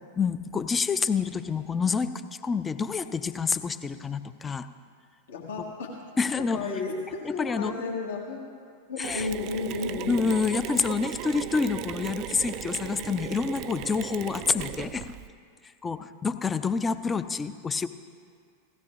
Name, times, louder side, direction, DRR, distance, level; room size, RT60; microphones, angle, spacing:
voice 1, 0.2-2.1 2.4-4.7 6.2-6.7 7.4-7.7 9.0-9.3 10.1-15.1 15.8-17.9, left 5 dB, 15° left, 12 dB, 0.5 m, -27 dB
voice 2, 5.3-5.9 6.2-8.4 8.9-10.3, left 4 dB, 65° left, -2 dB, 1.7 m, -33 dB
Mechanisms, 9.0-15.3, right 12 dB, 40° right, 0.4 m, -37 dB
17.0 x 15.5 x 2.5 m, 2.1 s
figure-of-eight pair, 90°, 0 cm